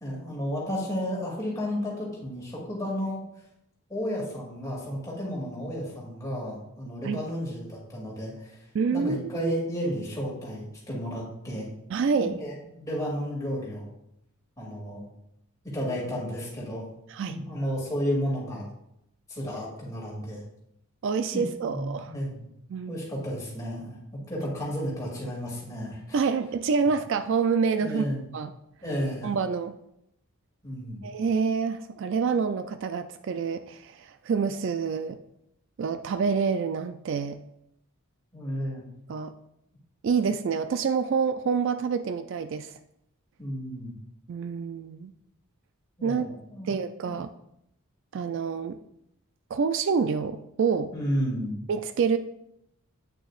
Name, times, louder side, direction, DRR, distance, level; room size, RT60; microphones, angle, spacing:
voice 1, 0.0-3.2 3.9-11.7 12.4-13.9 14.6-15.0 15.7-16.9 17.2-18.7 19.3-20.4 21.3-22.5 22.9-24.0 24.3-26.2 27.8-28.2 28.8-29.3 30.6-31.0 38.3-38.8 43.4-43.9 46.0-46.8 47.1-47.2 50.9-51.6, equal, 15° left, -5 dB, 2.4 m, -32 dB
voice 2, 8.7-9.5 11.9-12.4 17.1-17.4 21.0-22.1 22.7-23.0 26.1-28.0 28.3-28.5 29.2-29.7 31.0-35.2 35.8-37.4 39.1-39.3 40.0-42.7 44.3-45.1 46.0-46.3 46.6-47.3 48.1-48.8 49.5-50.9 51.7-52.2, right 5 dB, 55° right, 10 dB, 0.3 m, -27 dB
8.9 x 6.3 x 2.4 m, 0.78 s
head